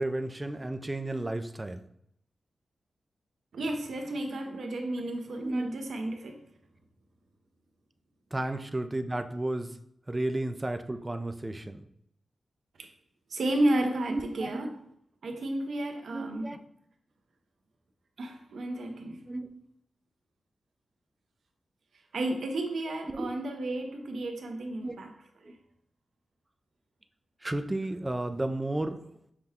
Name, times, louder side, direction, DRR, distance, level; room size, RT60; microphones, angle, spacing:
voice 1, 0.0-1.8 5.4-5.7 8.3-9.8 10.1-11.8 14.1-14.6 16.1-16.6 18.9-19.5 23.1-23.3 24.8-24.9 27.4-29.0, right 1 dB, 20° right, 8 dB, 0.3 m, -33 dB
voice 2, 3.5-6.4 12.8-12.9 13.3-14.7 15.2-16.5 18.2-19.2 22.1-25.1 25.4-25.6, right 1 dB, 80° right, 4 dB, 0.7 m, -32 dB
5.8 x 2.2 x 3.5 m, 0.71 s
wide cardioid pair, 105°, 0 cm